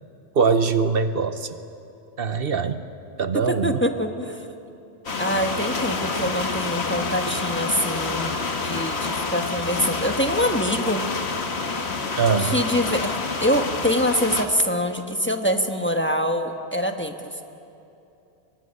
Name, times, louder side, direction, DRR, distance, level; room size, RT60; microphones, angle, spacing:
voice 1, 0.3-1.6 2.2-2.8 3.2-3.8 12.2-12.6, right 5 dB, 65° right, 10 dB, 1.1 m, -22 dB
voice 2, 3.5-4.5 5.2-11.1 12.4-17.4, equal, 10° left, 5 dB, 1.2 m, -25 dB
sound 1, 5.1-14.5, left 4 dB, 80° left, 1.7 m, -28 dB
23.5 x 20.0 x 9.7 m, 2.8 s
omnidirectional pair, 1.1 m